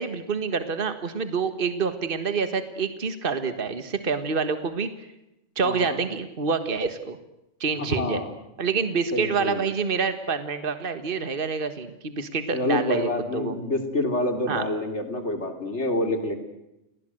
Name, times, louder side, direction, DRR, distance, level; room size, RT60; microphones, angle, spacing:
voice 1, 0.0-4.9 5.6-7.2 7.6-8.2 8.6-13.6 14.5-14.7, right 5 dB, 45° right, 10 dB, 1.7 m, -27 dB
voice 2, 5.6-6.0 7.8-8.3 9.1-9.6 12.5-16.4, left 2 dB, 65° left, 6 dB, 3.7 m, -27 dB
30.0 x 19.5 x 7.9 m, 0.91 s
omnidirectional pair, 1.3 m